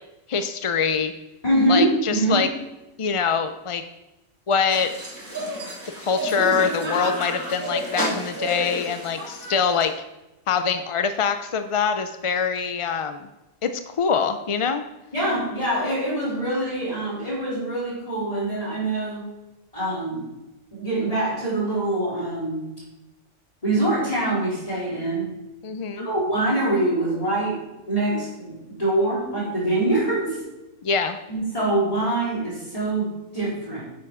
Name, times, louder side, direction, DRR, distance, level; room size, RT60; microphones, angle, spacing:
voice 1, 0.3-1.1 1.7-2.5 3.0-3.8 4.5-4.9 6.0-9.9 10.5-13.3 13.6-14.8 25.6-26.1 30.8-31.2, left 6 dB, 55° left, 9 dB, 0.3 m, -24 dB
voice 2, 1.4-2.5 15.1-19.3 19.7-20.3 20.7-22.7 23.6-25.3 26.0-30.4 31.3-33.8, right 1 dB, 30° left, -7 dB, 4.3 m, -24 dB
sound 1, 4.7-9.9, equal, 85° right, 3.8 m, -30 dB
10.5 x 6.9 x 4.8 m, 0.99 s
omnidirectional pair, 1.3 m